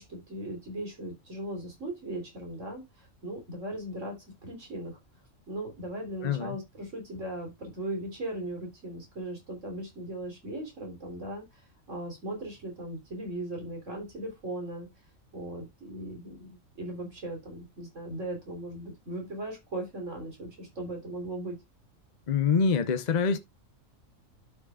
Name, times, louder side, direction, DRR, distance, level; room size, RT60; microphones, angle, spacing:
voice 1, 0.0-4.2 4.4-5.0 5.5-11.4 11.9-14.9 15.3-16.5 16.7-21.6, right 1 dB, 65° right, 4.0 m, -38 dB
voice 2, 6.2-6.6 22.3-23.4, left 5 dB, 40° left, 0.8 m, -25 dB
12.0 x 6.4 x 2.3 m
omnidirectional pair, 1.4 m